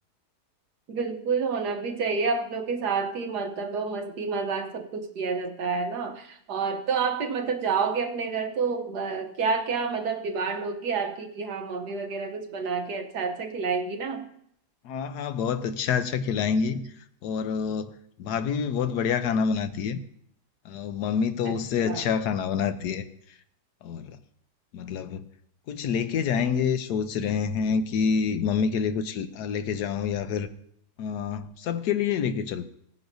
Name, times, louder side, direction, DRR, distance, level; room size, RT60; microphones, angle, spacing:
voice 1, 0.9-14.3 21.4-22.1, right 5 dB, 75° right, 1.6 m, -29 dB
voice 2, 14.8-16.8 17.2-20.0 20.6-23.0 23.8-24.2 24.7-25.2 25.7-30.5 31.0-32.6, left 6 dB, 80° left, 1.3 m, -27 dB
18.0 x 9.5 x 2.7 m
omnidirectional pair, 1.7 m